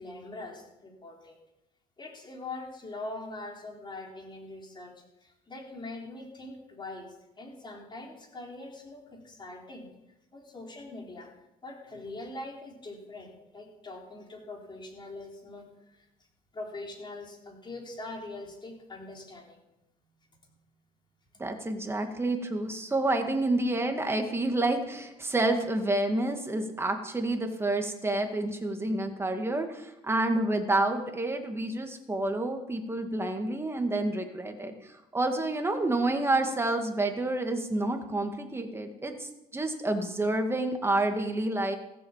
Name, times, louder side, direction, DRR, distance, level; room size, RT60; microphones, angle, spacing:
voice 1, 0.0-1.4 2.0-4.9 5.2-9.9 10.3-11.3 11.6-16.1 16.5-19.6, left 2 dB, 25° left, 0 dB, 3.9 m, -42 dB
voice 2, 21.4-41.8, right 2 dB, 15° right, 5 dB, 2.0 m, -29 dB
15.0 x 7.9 x 7.4 m, 0.90 s
cardioid pair, 110°, 17 cm